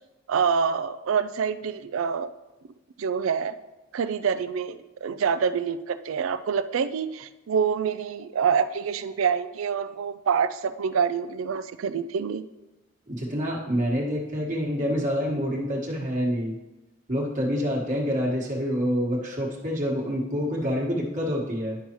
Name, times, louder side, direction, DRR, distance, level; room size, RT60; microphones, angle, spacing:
voice 1, 0.3-2.3 3.0-3.6 3.9-12.4, right 6 dB, 75° right, 13 dB, 0.4 m, -26 dB
voice 2, 13.1-16.6 17.1-21.8, equal, 35° right, -2 dB, 1.4 m, -27 dB
10.5 x 5.5 x 3.0 m, 1.1 s
head